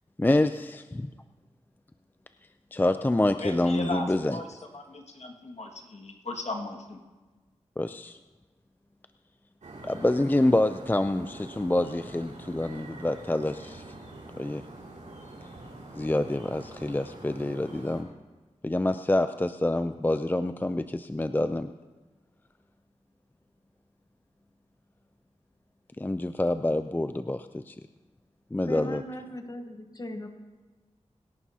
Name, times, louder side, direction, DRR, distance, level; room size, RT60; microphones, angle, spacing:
voice 1, 0.2-1.1 2.7-4.4 7.8-8.2 9.8-13.8 14.4-14.6 15.9-18.1 18.6-21.7 26.0-27.8 28.5-29.0, left 1 dB, 15° left, 10 dB, 0.4 m, -27 dB
voice 2, 3.4-7.0, left 2 dB, 65° left, 1 dB, 1.9 m, -37 dB
sound 1, 9.6-18.0, right 2 dB, 80° right, 2.7 m, -45 dB
voice 3, 28.6-30.3, left 1 dB, 30° left, 6 dB, 1.2 m, -38 dB
26.0 x 11.0 x 2.8 m, 1.2 s
cardioid pair, 55°, 12 cm